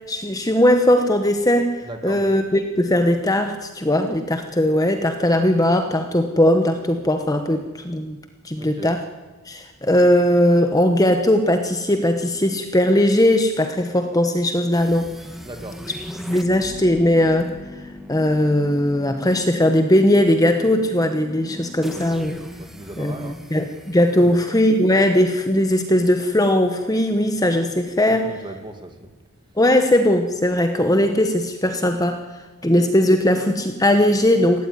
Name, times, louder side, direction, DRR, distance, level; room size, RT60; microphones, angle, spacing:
voice 1, 0.1-1.8 2.0-8.2 8.4-9.0 9.5-15.1 16.2-17.5 18.1-22.4 23.0-28.4 29.6-32.2 32.6-34.7, left 1 dB, 15° left, 7 dB, 1.1 m, -19 dB
voice 2, 1.8-2.2 8.6-8.9 15.4-15.8 22.6-23.4 24.2-24.4 28.1-29.1, right 1 dB, 20° right, 5 dB, 2.2 m, -37 dB
sound 1, 14.7-25.7, left 1 dB, ahead, 1.6 m, -39 dB
18.0 x 17.0 x 9.6 m, 1.3 s
head